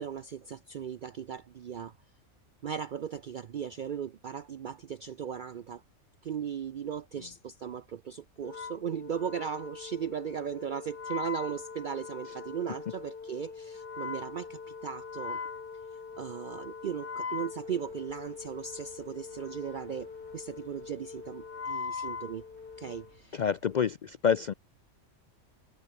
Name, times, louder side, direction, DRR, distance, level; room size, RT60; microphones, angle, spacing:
voice 1, 0.0-1.9 2.6-5.8 6.2-15.4 16.2-22.4 22.8-23.4, right 8 dB, 70° right, 0.4 m, -37 dB
Wind instrument woodwind instrument, 8.4-23.1, left 5 dB, 40° left, 1.5 m, -41 dB
sound 1, 17.8-23.8, right 2 dB, 50° right, 5.9 m, -62 dB
voice 2, 23.3-24.5, left 7 dB, 75° left, 0.4 m, -27 dB
omnidirectional pair, 1.4 m